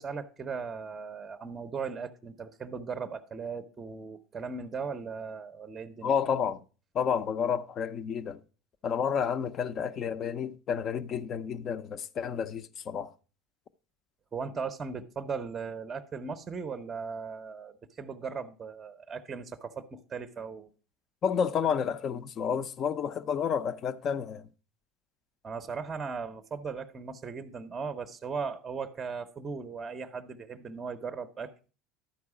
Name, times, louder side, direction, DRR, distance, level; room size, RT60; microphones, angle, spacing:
voice 1, 0.0-6.1 14.3-20.7 25.4-31.5, right 5 dB, 20° right, 0.6 m, -38 dB
voice 2, 6.0-6.6 6.9-8.4 8.8-13.1 21.2-24.5, left 7 dB, 35° left, 0.5 m, -30 dB
11.5 x 4.7 x 4.8 m
supercardioid pair, 130°, 0 cm